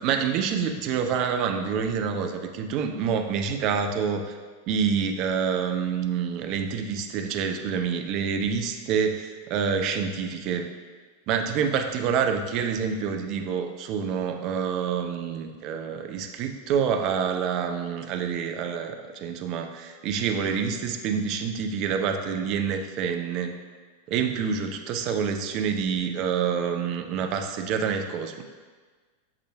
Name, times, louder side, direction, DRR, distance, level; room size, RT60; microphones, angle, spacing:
voice 1, 0.0-4.4 4.7-10.7 11.3-23.5 24.1-28.4, right 6 dB, 40° right, 5 dB, 0.4 m, -27 dB
6.4 x 3.6 x 2.2 m, 1.4 s
figure-of-eight pair, 90°, 0 cm